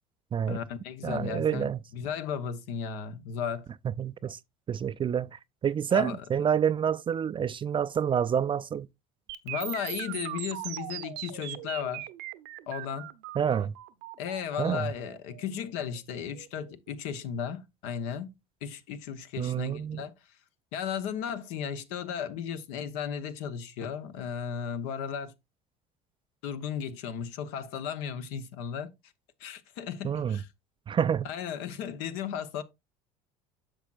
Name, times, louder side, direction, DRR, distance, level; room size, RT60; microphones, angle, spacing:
voice 1, 0.5-3.7 5.9-6.2 9.4-12.1 12.7-13.1 14.2-18.3 18.6-20.1 20.7-25.3 26.4-28.9 29.4-30.5 31.2-32.6, left 8 dB, 70° left, 1.0 m, -35 dB
voice 2, 1.0-1.8 4.0-4.4 4.7-8.9 13.4-13.7 14.6-14.9 19.4-20.0 30.0-30.4 30.9-31.3, right 8 dB, 25° right, 0.4 m, -28 dB
sound 1, 9.3-17.2, right 16 dB, 65° right, 0.8 m, -40 dB
10.0 x 6.3 x 2.4 m
hypercardioid pair, 80°, 19 cm